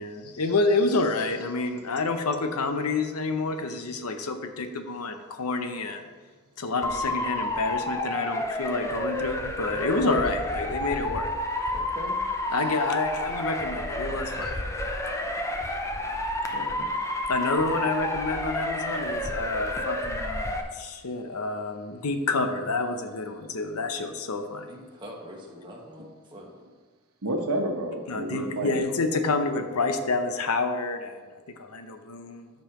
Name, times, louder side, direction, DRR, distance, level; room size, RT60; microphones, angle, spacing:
voice 1, 0.0-6.1 6.6-11.3 12.5-14.6 17.3-24.7 28.1-31.2 31.6-32.5, left 3 dB, 80° left, 7 dB, 0.8 m, -28 dB
Motor vehicle (road) / Siren, 6.8-20.6, left 1 dB, 15° left, 0.5 m, -30 dB
voice 2, 11.7-12.2 24.7-26.5, equal, 20° right, -2 dB, 1.4 m, -42 dB
voice 3, 16.5-16.9 27.2-28.8, right 1 dB, 80° right, 2 dB, 1.2 m, -31 dB
13.5 x 5.4 x 3.0 m, 1.4 s
head